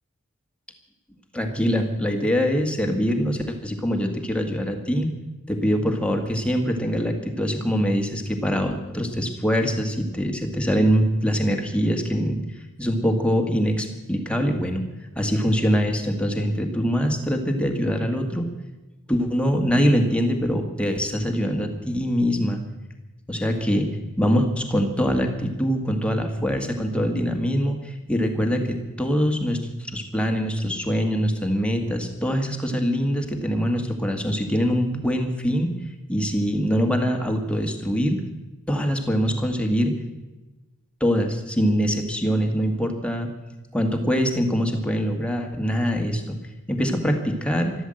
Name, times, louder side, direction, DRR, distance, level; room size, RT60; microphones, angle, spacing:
voice 1, 1.3-5.1 5.5-12.4 12.8-14.9 15.2-18.5 19.1-22.6 23.3-23.9 24.2-29.6 29.9-35.7 36.1-38.2 38.7-39.9 41.0-43.3 43.7-46.4 46.7-47.7, equal, 5° left, 3 dB, 1.9 m, -23 dB
13.0 x 13.0 x 7.8 m, 1.1 s
head